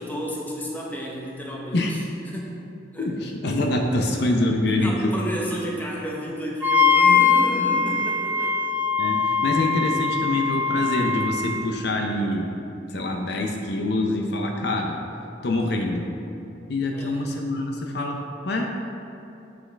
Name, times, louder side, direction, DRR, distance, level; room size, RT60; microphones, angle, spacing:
voice 1, 0.0-2.5 2.9-3.1 3.6-3.7 4.8-8.6 16.9-17.2, equal, 10° left, -3 dB, 0.9 m, -32 dB
voice 2, 3.0-5.2 9.0-12.5 12.9-15.0 15.4-16.1 16.7-18.7, left 1 dB, 65° left, 2 dB, 0.6 m, -25 dB
Wind instrument woodwind instrument, 6.6-11.6, left 5 dB, 10° right, 0.5 m, -21 dB
7.4 x 6.2 x 3.3 m, 2.7 s
head